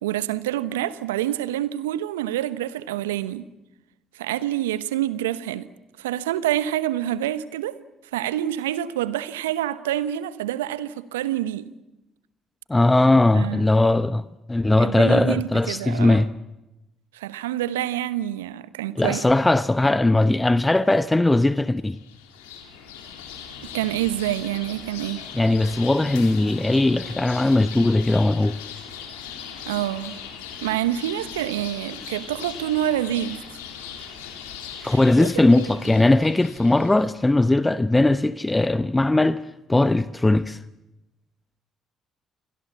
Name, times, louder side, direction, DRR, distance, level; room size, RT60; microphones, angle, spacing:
voice 1, 0.0-3.5 4.1-5.7 6.0-7.8 8.1-11.7 13.3-13.7 14.8-16.3 17.1-19.2 23.7-25.2 29.7-30.2 30.6-33.4 34.8-35.3 35.6-35.9, right 12 dB, 80° right, 0.9 m, -27 dB
voice 2, 12.7-14.2 14.5-16.3 19.0-22.0 25.3-28.5 34.8-39.4 39.7-40.6, left 2 dB, 15° left, 0.9 m, -19 dB
sound 1, 21.9-37.1, left 7 dB, 80° left, 3.4 m, -39 dB
28.5 x 23.5 x 7.4 m
figure-of-eight pair, 45°, 0 cm